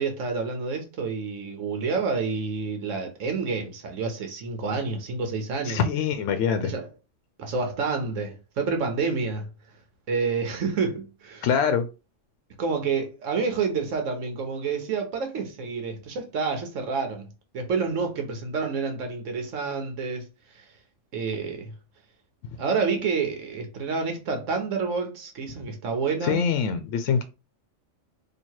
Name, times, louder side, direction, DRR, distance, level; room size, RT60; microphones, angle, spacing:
voice 1, 0.0-5.8 6.6-6.9 7.4-9.5 10.1-11.5 12.6-17.3 17.5-20.3 20.5-20.6 21.1-21.7 22.6-26.4, right 5 dB, 90° right, 1.2 m, -28 dB
voice 2, 5.6-6.7 11.4-11.9 26.2-27.2, left 6 dB, 80° left, 0.9 m, -24 dB
2.9 x 2.8 x 4.4 m
omnidirectional pair, 1.3 m